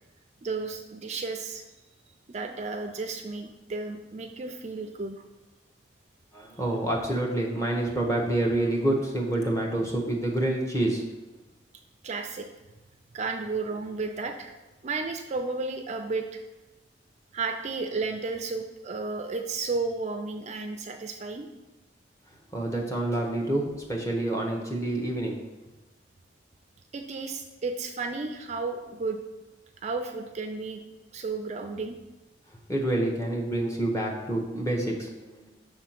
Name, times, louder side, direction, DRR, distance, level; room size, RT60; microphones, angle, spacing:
voice 1, 0.4-1.6 2.3-5.2 12.0-12.5 13.1-14.5 14.8-16.4 17.3-21.5 26.9-29.2 29.8-30.8 31.1-32.0, right 3 dB, 40° right, 5 dB, 0.4 m, -33 dB
voice 2, 6.3-11.0 22.5-25.4 32.7-35.5, right 1 dB, 15° left, -1 dB, 1.1 m, -27 dB
6.4 x 3.6 x 5.9 m, 1.1 s
head